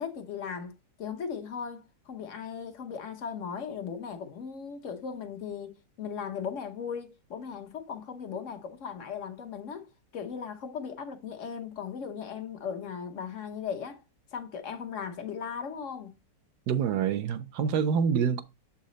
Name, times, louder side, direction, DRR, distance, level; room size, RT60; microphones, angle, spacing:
voice 1, 0.0-14.0 14.3-16.1, left 7 dB, 55° left, 1.0 m, -37 dB
voice 2, 16.7-18.4, right 7 dB, 70° right, 1.1 m, -26 dB
7.2 x 4.2 x 3.8 m
omnidirectional pair, 2.0 m